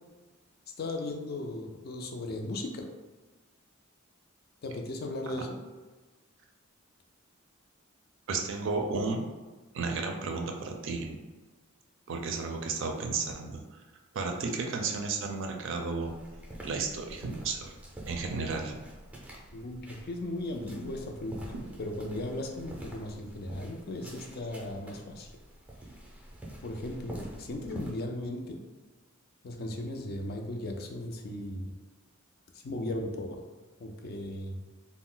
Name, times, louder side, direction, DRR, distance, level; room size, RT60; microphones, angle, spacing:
voice 1, 0.8-2.9 4.6-5.6 19.5-25.3 26.6-28.6 29.4-31.7 32.6-33.4 33.8-34.6, left 1 dB, 50° left, 3 dB, 0.4 m, -37 dB
voice 2, 8.3-9.2 9.7-11.2 12.1-13.8 14.1-16.1 16.6-17.7 18.1-18.7, right 4 dB, 65° right, 3 dB, 0.4 m, -33 dB
sound 1, 16.0-27.9, right 1 dB, 5° right, 0.5 m, -47 dB
2.4 x 2.1 x 3.7 m, 1.2 s
head